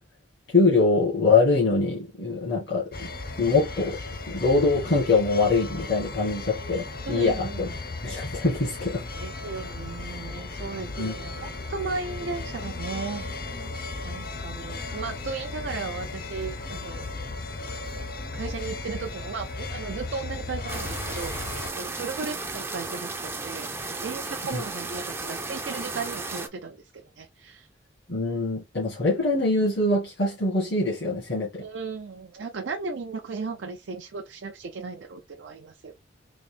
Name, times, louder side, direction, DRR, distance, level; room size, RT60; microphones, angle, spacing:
voice 1, 0.5-3.1 3.4-4.0 4.3-7.7 8.0-9.0 11.0-11.1 24.5-24.6 28.1-31.6, left 3 dB, 75° left, 1.5 m, -23 dB
sound 1, 2.9-21.7, left 3 dB, 50° left, 0.6 m, -36 dB
voice 2, 7.0-7.8 9.2-13.3 14.0-17.2 18.3-27.7 31.6-35.9, right 4 dB, 80° right, 0.5 m, -36 dB
sound 2, 20.7-26.5, right 3 dB, 15° right, 0.4 m, -34 dB
4.0 x 2.7 x 3.2 m
head